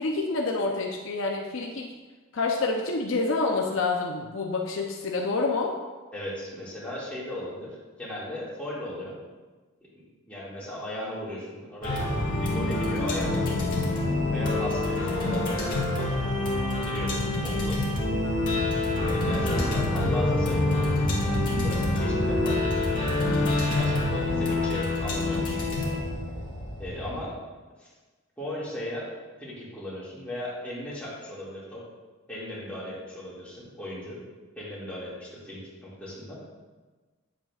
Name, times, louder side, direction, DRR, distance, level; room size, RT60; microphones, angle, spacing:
voice 1, 0.0-1.9 2.3-5.8, left 3 dB, 60° left, 0 dB, 0.6 m, -27 dB
voice 2, 6.1-9.2 9.9-12.0 12.4-13.8 14.3-18.2 19.0-20.9 21.2-22.6 23.2-25.7 26.8-27.4 27.8-27.9 28.4-31.8 32.3-34.2 34.6-36.4, left 1 dB, 5° left, -8 dB, 2.0 m, -37 dB
sound 1, 11.8-27.1, left 2 dB, 40° left, 1.7 m, -26 dB
9.1 x 7.4 x 2.4 m, 1.3 s
head